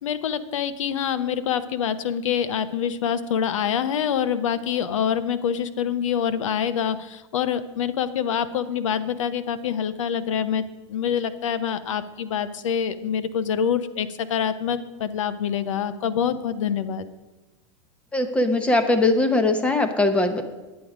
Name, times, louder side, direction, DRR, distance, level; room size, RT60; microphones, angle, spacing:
voice 1, 0.0-17.1, left 8 dB, 90° left, 13 dB, 0.8 m, -26 dB
voice 2, 18.1-20.4, left 2 dB, 5° left, 7 dB, 0.8 m, -20 dB
9.3 x 9.2 x 4.9 m, 1.1 s
supercardioid pair, 160°, 16 cm